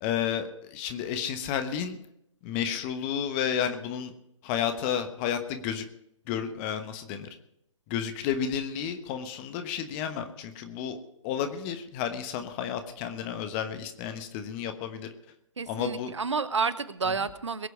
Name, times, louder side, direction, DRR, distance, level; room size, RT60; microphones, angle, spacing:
voice 1, 0.0-2.0 2.4-4.1 4.4-5.8 6.3-7.3 7.9-11.0 11.2-15.1 15.7-16.1, left 8 dB, 20° left, 8 dB, 1.1 m, -31 dB
voice 2, 15.6-17.7, right 5 dB, 65° right, 15 dB, 1.0 m, -30 dB
22.0 x 8.1 x 4.7 m, 0.77 s
figure-of-eight pair, 135°, 17 cm